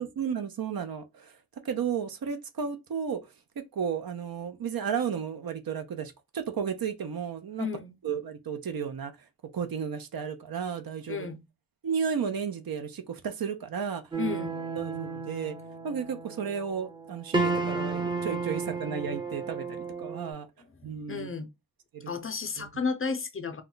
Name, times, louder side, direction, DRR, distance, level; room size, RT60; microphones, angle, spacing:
voice 1, 0.0-1.3 1.6-3.2 3.7-7.7 8.0-9.1 9.5-11.3 11.8-14.0 14.8-15.5 15.8-20.5 20.8-21.3 21.9-22.1 22.6-22.7, right 7 dB, 85° right, 0.5 m, -33 dB
voice 2, 7.6-8.0 11.1-11.4 14.2-14.6 21.1-21.5 22.1-23.6, left 5 dB, 40° left, 0.4 m, -32 dB
sound 1, 14.1-20.3, right 4 dB, 15° right, 0.5 m, -33 dB
2.2 x 2.1 x 3.7 m
wide cardioid pair, 70°, 34 cm